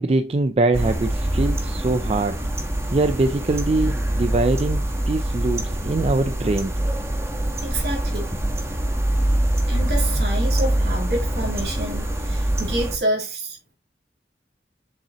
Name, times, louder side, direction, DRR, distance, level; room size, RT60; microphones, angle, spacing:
voice 1, 0.0-2.4 2.9-6.8, right 2 dB, 35° right, 0.4 m, -23 dB
sound 1, 0.7-13.0, right 1 dB, 15° right, 1.2 m, -24 dB
voice 2, 7.6-8.3 9.7-13.6, right 1 dB, 65° right, 3.1 m, -28 dB
7.2 x 5.3 x 2.9 m
head